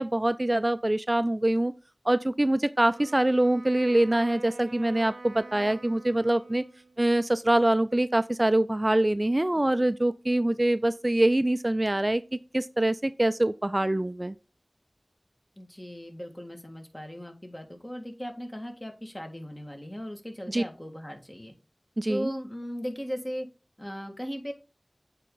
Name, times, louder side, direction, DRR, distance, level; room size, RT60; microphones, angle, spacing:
voice 1, 0.0-1.7 2.1-6.6 7.0-12.2 12.5-14.3 20.5-20.6 22.0-22.3, right 1 dB, 35° right, 0.3 m, -24 dB
Wind instrument woodwind instrument, 2.9-7.0, right 2 dB, 85° right, 0.6 m, -46 dB
voice 2, 15.6-21.5 22.1-23.5 23.8-24.5, equal, 25° left, 1.7 m, -37 dB
8.3 x 3.5 x 3.8 m
wide cardioid pair, 45°, 0 cm